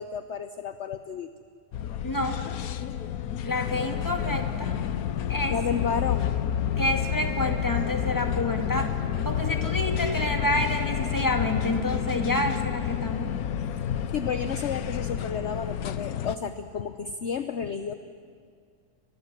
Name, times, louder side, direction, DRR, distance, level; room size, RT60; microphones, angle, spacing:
voice 1, 0.0-1.3 5.5-6.3 14.1-17.9, left 6 dB, 55° left, 10 dB, 1.1 m, -31 dB
sound 1, 1.7-16.4, left 9 dB, 70° left, 1.3 m, -29 dB
voice 2, 2.0-2.4 3.4-4.8 5.3-5.6 6.8-8.9 9.2-13.3, left 1 dB, 10° left, 4 dB, 2.2 m, -28 dB
29.5 x 25.5 x 7.5 m, 2.1 s
omnidirectional pair, 1.6 m